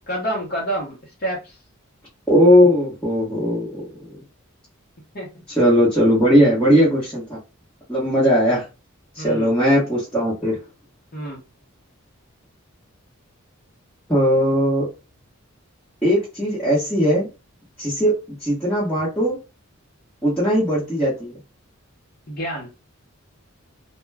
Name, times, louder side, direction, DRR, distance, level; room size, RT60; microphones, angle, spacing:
voice 1, 0.1-1.6 5.1-5.3 9.2-9.5 11.1-11.4 22.3-22.7, right 1 dB, 45° left, -4 dB, 0.8 m, -28 dB
voice 2, 2.3-3.7 5.6-7.4 7.9-8.6 9.1-10.6 14.1-14.9 16.0-17.3 17.8-19.4 20.2-21.3, equal, 5° left, -10 dB, 0.9 m, -18 dB
2.3 x 2.1 x 3.2 m, 0.28 s
head